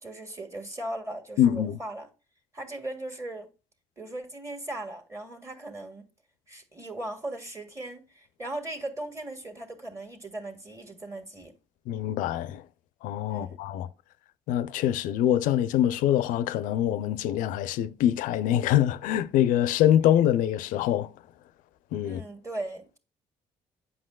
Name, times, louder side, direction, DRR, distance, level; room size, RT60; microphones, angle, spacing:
voice 1, 0.0-2.1 2.5-3.5 4.0-6.1 6.5-11.5 13.3-13.6 22.0-23.0, right 1 dB, 20° right, 1.5 m, -38 dB
voice 2, 1.4-1.8 11.9-12.6 13.0-13.9 14.5-21.1 21.9-22.2, left 11 dB, 75° left, 0.5 m, -24 dB
7.8 x 5.6 x 2.3 m
supercardioid pair, 65°, 14 cm